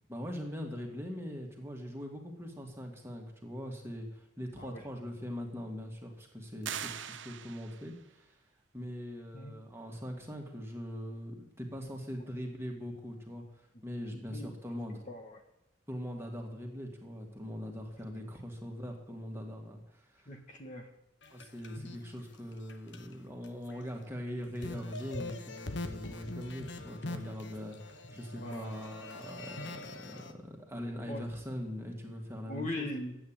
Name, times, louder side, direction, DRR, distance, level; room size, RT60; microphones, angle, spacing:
voice 1, 0.1-8.4 8.7-13.4 13.8-15.0 15.9-20.4 21.3-32.9, equal, 15° right, 1 dB, 2.3 m, -41 dB
sound 1, 6.6-8.0, right 9 dB, 70° right, 0.8 m, -41 dB
voice 2, 14.1-14.5 15.1-15.4 20.3-20.9 28.4-28.7 31.1-31.3 32.5-33.2, left 1 dB, 40° left, 4 dB, 1.6 m, -40 dB
sound 2, 21.2-23.1 23.4-23.8 24.2-30.3, left 2 dB, 65° left, 1.1 m, -44 dB
12.5 x 8.8 x 9.0 m, 0.85 s
head